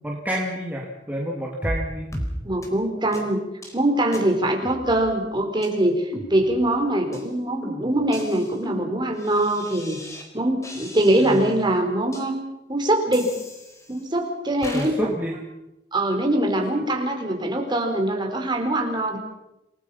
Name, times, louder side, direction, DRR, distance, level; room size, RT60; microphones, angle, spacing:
voice 1, 0.0-2.2 11.2-11.5 14.7-15.3 16.8-16.9, right 1 dB, 10° right, -2 dB, 2.5 m, -29 dB
sound 1, 1.6-1.8 2.1-2.3 2.6-2.7 3.1-3.2 3.6-3.8 4.1-4.2 4.6-5.3 5.6-5.7 6.1-6.7 7.1-7.3 7.6-10.3 10.6-11.5 12.1-12.2 13.1-14.1 14.6-14.9, equal, 20° left, 4.2 m, -36 dB
voice 2, 2.4-3.4 3.7-10.0 10.3-12.4 12.7-13.3 13.9-15.1 15.9-19.2, right 1 dB, 25° right, 2 dB, 4.2 m, -23 dB
28.0 x 19.5 x 5.6 m, 0.92 s
head